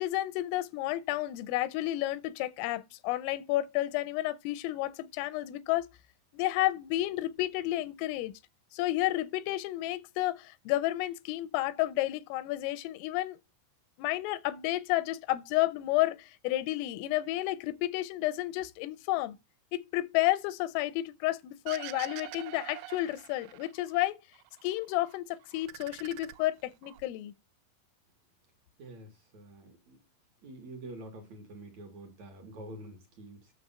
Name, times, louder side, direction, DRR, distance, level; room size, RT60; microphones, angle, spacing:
voice 1, 0.0-5.9 6.3-8.3 8.7-13.4 14.0-19.4 19.7-24.2 24.6-27.3, left 16 dB, 85° left, 3.3 m, -31 dB
sound 1, 21.7-24.0 24.3-25.2 25.5-27.0, right 16 dB, 80° right, 3.1 m, -45 dB
voice 2, 28.8-30.0 30.4-33.5, right 1 dB, 65° right, 1.8 m, -47 dB
9.5 x 6.9 x 5.5 m
omnidirectional pair, 5.7 m